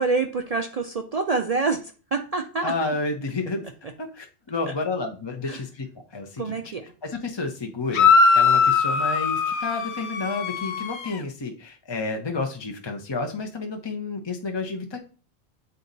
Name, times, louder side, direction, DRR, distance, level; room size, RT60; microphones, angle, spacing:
voice 1, 0.0-2.7 5.4-5.6 6.4-6.8, right 4 dB, 45° right, 5 dB, 0.5 m, -26 dB
voice 2, 2.6-3.7 4.0-6.7 7.0-15.0, left 3 dB, 30° left, 3 dB, 0.7 m, -31 dB
sound 1, 7.9-11.2, left 5 dB, 80° left, 1.0 m, -20 dB
7.9 x 4.0 x 4.0 m, 0.37 s
omnidirectional pair, 1.1 m